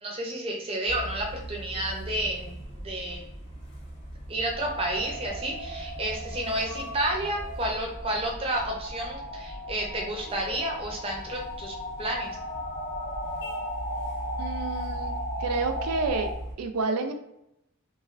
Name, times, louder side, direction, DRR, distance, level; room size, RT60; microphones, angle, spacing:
voice 1, 0.0-2.6 2.8-3.2 4.3-12.4, right 1 dB, 25° right, 0 dB, 0.5 m, -31 dB
sound 1, 0.9-16.5, right 1 dB, 50° left, 1.0 m, -40 dB
sound 2, 4.5-16.3, equal, 15° left, 0.7 m, -37 dB
voice 2, 14.4-15.1 15.4-16.3 16.6-17.1, right 3 dB, 90° right, 7 dB, 0.4 m, -29 dB
3.1 x 2.3 x 2.4 m, 0.83 s
head